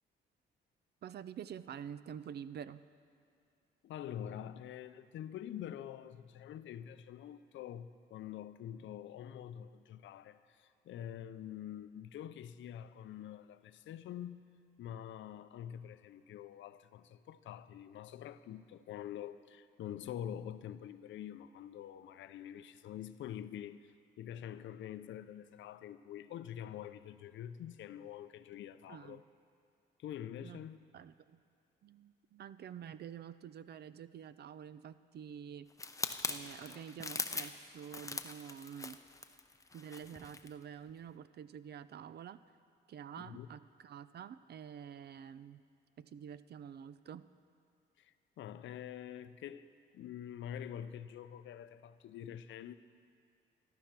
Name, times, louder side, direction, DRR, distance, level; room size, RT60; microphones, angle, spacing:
voice 1, 1.0-2.8 28.9-29.2 30.4-30.6 30.9-31.4 31.8-35.7 36.3-39.0 39.7-42.4 42.9-45.6 46.0-47.3, right 8 dB, 55° right, 0.5 m, -48 dB
voice 2, 3.8-14.4 14.8-29.2 30.0-30.8 43.2-43.5 48.0-49.7 49.9-52.7, left 10 dB, 70° left, 0.6 m, -46 dB
sound 1, 35.8-40.5 40.9-41.1, left 3 dB, 15° left, 0.6 m, -42 dB
13.0 x 12.5 x 5.9 m
cardioid pair, 90°, 20 cm